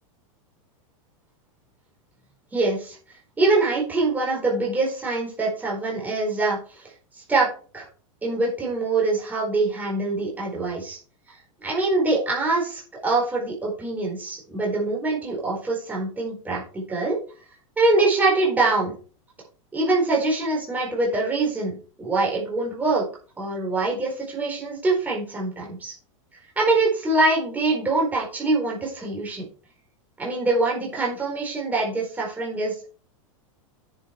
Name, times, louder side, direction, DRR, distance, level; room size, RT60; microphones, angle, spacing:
voice 1, 2.5-3.0 3.4-6.9 7.3-7.5 7.7-7.9 8.2-11.0 11.6-17.2 17.8-19.0 19.7-23.1 23.4-25.9 26.6-29.5 30.2-32.9, right 2 dB, 10° right, -1 dB, 4.4 m, -24 dB
9.5 x 7.6 x 4.7 m, 0.38 s
supercardioid pair, 160°, 17 cm